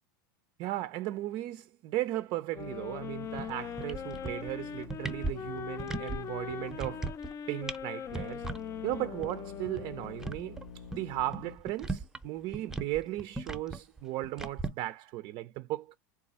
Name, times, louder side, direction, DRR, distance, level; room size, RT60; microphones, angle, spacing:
voice 1, 0.6-7.2 7.5-8.5 8.8-16.0, right 15 dB, 45° right, 0.4 m, -36 dB
sound 1, 2.5-10.5, left 8 dB, 25° left, 0.3 m, -41 dB
sound 2, 2.6-7.4 8.0-11.6, left 5 dB, 80° left, 0.6 m, -49 dB
sound 3, 3.4-3.5 3.8-4.5 4.8-6.2 6.5-7.3 7.6-7.8 8.1-8.6 8.9-9.0 9.2-9.3 9.7-12.3 12.5-14.7, right 3 dB, 5° right, 0.6 m, -37 dB
3.9 x 2.3 x 4.0 m
hypercardioid pair, 100°, 11 cm